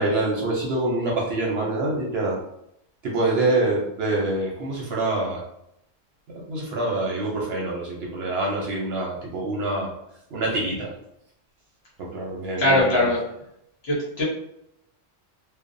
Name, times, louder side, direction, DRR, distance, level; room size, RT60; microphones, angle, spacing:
voice 1, 0.0-2.4 3.0-5.4 6.3-9.9 10.3-10.9 12.0-13.1, right 2 dB, 65° right, -2 dB, 0.8 m, -25 dB
voice 2, 12.6-13.2 13.8-14.2, left 1 dB, 55° left, -5 dB, 1.2 m, -20 dB
2.7 x 2.1 x 2.5 m, 0.78 s
omnidirectional pair, 1.3 m